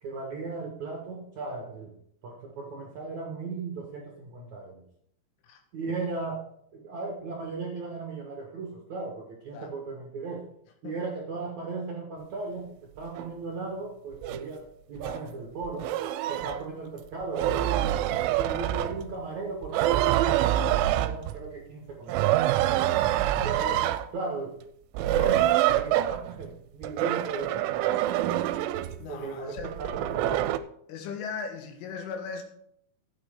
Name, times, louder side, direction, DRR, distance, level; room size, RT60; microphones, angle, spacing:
voice 1, 0.0-1.9 2.2-4.8 5.7-6.5 6.7-10.4 10.8-15.9 16.3-17.9 18.4-22.5 23.3-23.9 24.1-24.6 25.0-28.4 29.1-30.5, right 3 dB, 60° right, 0 dB, 2.0 m, -37 dB
sound 1, 13.2-13.3 14.2-14.4 15.0-15.2 15.6-16.6 17.2-19.2 19.6-21.5 22.1-24.1 25.0-26.5 26.8-29.1 29.6-30.6, right 13 dB, 85° right, 2.9 m, -26 dB
voice 2, 29.0-29.7 30.9-32.4, left 5 dB, 80° left, 4 dB, 4.0 m, -38 dB
14.5 x 8.9 x 3.7 m, 0.67 s
omnidirectional pair, 5.6 m